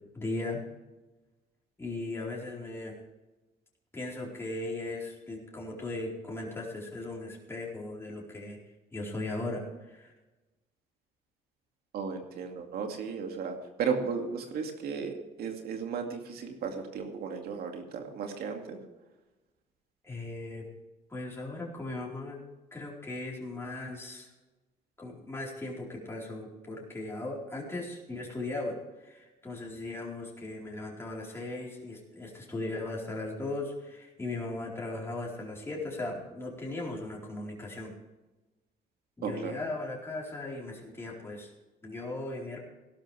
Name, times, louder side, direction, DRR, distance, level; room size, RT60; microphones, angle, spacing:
voice 1, 0.1-0.6 1.8-2.9 3.9-8.6 8.9-10.1 20.0-20.6 21.1-22.4 22.7-24.3 25.0-37.9 39.2-41.5 41.8-42.6, left 2 dB, 15° left, -3 dB, 4.3 m, -38 dB
voice 2, 11.9-18.8 39.2-39.5, right 6 dB, 65° right, 3 dB, 2.3 m, -35 dB
16.5 x 12.5 x 3.4 m, 1.1 s
cardioid pair, 110°, 17 cm